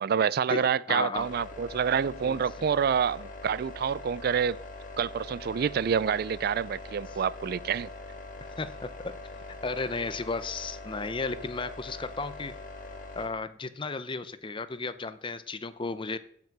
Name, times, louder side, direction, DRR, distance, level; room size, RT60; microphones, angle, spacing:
voice 1, 0.0-4.6 5.0-7.9, right 7 dB, 50° right, 0.3 m, -27 dB
voice 2, 0.9-1.3 2.3-2.4 8.6-9.1 9.6-12.6 13.2-16.2, left 3 dB, 25° left, 0.6 m, -34 dB
sound 1, 1.2-13.3, left 2 dB, 45° left, 1.7 m, -43 dB
14.5 x 6.1 x 5.9 m
head